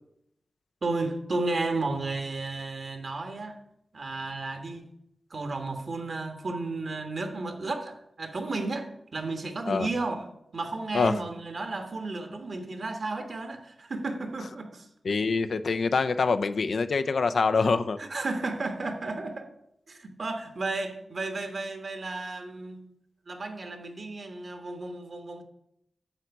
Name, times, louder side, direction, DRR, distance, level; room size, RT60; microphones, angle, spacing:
voice 1, 0.8-3.6 3.9-4.9 5.3-10.3 10.5-14.9 18.0-19.5 19.9-22.8 23.3-25.4, right 3 dB, 60° right, 1.4 m, -33 dB
voice 2, 15.0-18.0, left 4 dB, 70° left, 0.5 m, -25 dB
8.9 x 4.0 x 7.1 m
cardioid pair, 45°, 0 cm